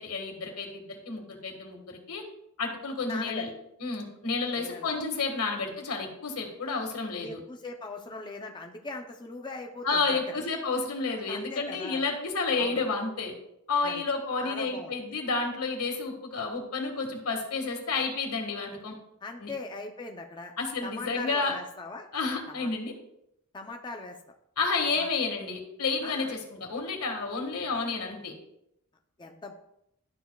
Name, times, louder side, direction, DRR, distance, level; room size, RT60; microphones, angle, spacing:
voice 1, 0.0-2.2 2.6-3.5 3.8-7.4 9.8-13.3 13.7-18.9 19.4-19.5 20.6-21.5 22.1-22.9 24.6-28.3, left 4 dB, 85° left, 3 dB, 1.7 m, -30 dB
voice 2, 3.0-3.5 4.6-4.9 7.2-10.4 11.3-12.0 12.6-12.8 13.8-14.0 14.4-14.9 19.2-20.5 20.8-22.1 22.5-22.7 23.5-24.2 25.0-25.1 26.0-26.3 29.2-29.5, left 3 dB, 20° left, 2 dB, 0.6 m, -40 dB
11.5 x 6.8 x 2.3 m, 0.79 s
head